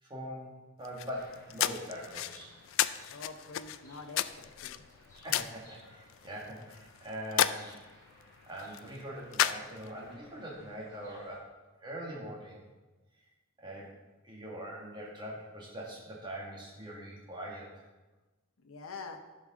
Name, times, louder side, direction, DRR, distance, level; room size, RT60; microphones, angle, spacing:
voice 1, 0.0-2.5 5.2-7.8 8.5-11.5 11.8-12.7 13.6-13.9 14.2-17.9, equal, 20° right, -4 dB, 1.7 m, -42 dB
sound 1, 0.8-10.1, left 11 dB, 70° left, 0.3 m, -35 dB
sound 2, 1.1-11.4, left 1 dB, 15° left, 2.9 m, -60 dB
voice 2, 3.1-4.8 18.6-19.2, left 4 dB, 85° left, 5 dB, 0.8 m, -46 dB
12.0 x 5.4 x 3.7 m, 1.2 s
head